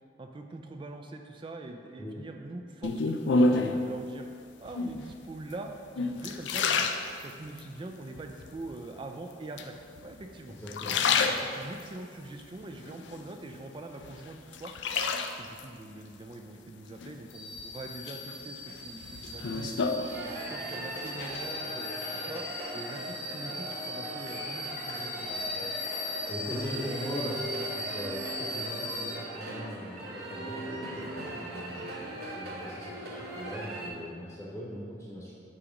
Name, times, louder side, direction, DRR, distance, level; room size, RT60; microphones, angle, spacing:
voice 1, 0.2-4.3 4.6-6.9 7.2-9.7 10.0-10.6 10.9-14.7 15.4-19.8 20.2-22.4 22.7-25.5, right 2 dB, 25° right, 4 dB, 0.3 m, -43 dB
sound 1, 2.8-3.9 4.7-5.2 5.7-7.7 8.2-8.8 9.6-10.2 10.6-11.9 12.4-13.6 14.0-15.6 17.0-17.6 18.1-20.7 20.9-21.4, left 3 dB, 70° left, 0.4 m, -29 dB
voice 2, 10.6-11.4 26.3-31.9 32.2-35.3, equal, 15° left, -6 dB, 0.9 m, -40 dB
sound 2, 17.3-29.1, left 1 dB, 90° left, 1.3 m, -39 dB
sound 3, 20.1-33.9, right 1 dB, 55° right, 1.0 m, -39 dB
8.4 x 2.9 x 5.1 m, 2.3 s
head